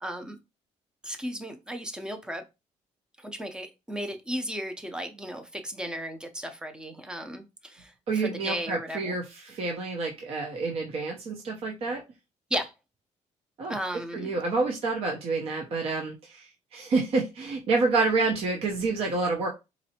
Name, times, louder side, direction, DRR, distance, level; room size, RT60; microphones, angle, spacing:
voice 1, 0.0-0.4 1.0-2.4 3.2-9.2 12.5-12.7 13.7-14.3, equal, 5° right, 0.5 m, -35 dB
voice 2, 8.1-12.0 13.6-19.5, right 3 dB, 50° right, 0.6 m, -28 dB
4.1 x 2.6 x 2.8 m
cardioid pair, 140°, 13 cm